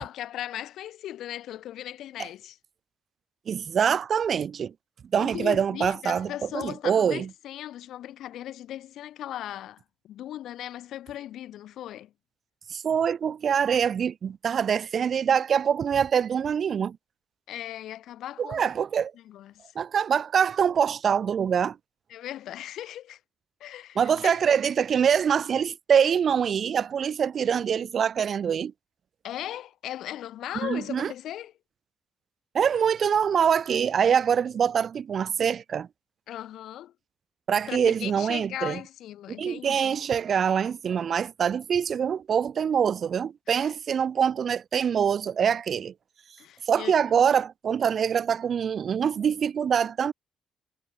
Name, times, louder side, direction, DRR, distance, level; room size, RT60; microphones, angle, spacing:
voice 1, 0.0-2.6 5.2-12.1 17.5-18.7 19.1-19.7 22.1-23.2 23.6-24.4 29.2-31.5 36.3-36.9 37.7-40.0 43.5-43.6 46.4-47.2, left 12 dB, 75° left, 1.1 m, -38 dB
voice 2, 3.5-4.7 5.1-7.3 12.7-17.0 18.4-19.1 19.7-21.8 24.0-28.7 30.6-31.1 32.5-35.9 37.5-38.8 39.4-45.9 46.7-50.1, right 7 dB, 45° right, 1.2 m, -24 dB
cardioid pair, 135°, 0 cm